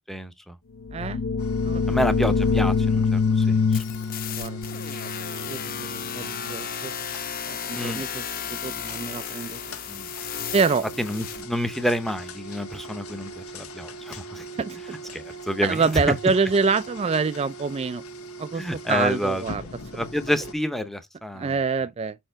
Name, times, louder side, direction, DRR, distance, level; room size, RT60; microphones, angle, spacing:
voice 1, 0.1-0.6 1.9-3.8 7.7-8.0 9.9-10.1 11.0-14.5 15.1-16.1 18.5-19.4 19.9-21.6, equal, ahead, 0.7 m, -28 dB
sound 1, 0.8-6.4, left 5 dB, 65° left, 0.6 m, -25 dB
voice 2, 0.9-1.2 1.6-2.0 4.4-4.6 5.5-5.9 6.1-6.9 7.5-9.6 10.5-10.8 14.5-15.0 15.6-18.0 18.4-19.6 21.3-22.2, right 5 dB, 30° right, 0.3 m, -26 dB
sound 2, 1.4-20.5, right 1 dB, 90° left, 1.3 m, -41 dB
sound 3, 3.7-11.4, left 8 dB, 40° left, 0.9 m, -34 dB
5.9 x 4.5 x 4.4 m
head